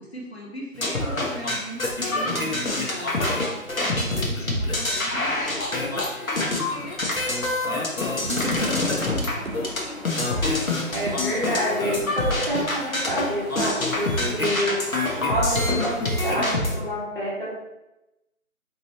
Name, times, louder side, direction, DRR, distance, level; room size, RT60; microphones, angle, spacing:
voice 1, 0.0-3.2 3.8-7.0 7.6-10.0, equal, 50° left, -2 dB, 1.0 m, -37 dB
sound 1, 0.8-9.8 10.0-16.7, left 2 dB, 70° left, 1.2 m, -26 dB
sound 2, 8.2-9.0 9.4-10.3 10.6-10.7 11.1-11.8 13.1-13.7, right 3 dB, 65° right, 0.5 m, -41 dB
Wind, 8.5-16.3, equal, ahead, 0.4 m, -42 dB
voice 2, 10.9-14.8 15.3-17.6, equal, 35° right, -6 dB, 1.3 m, -27 dB
5.1 x 3.0 x 3.0 m, 0.96 s
figure-of-eight pair, 170°, 42 cm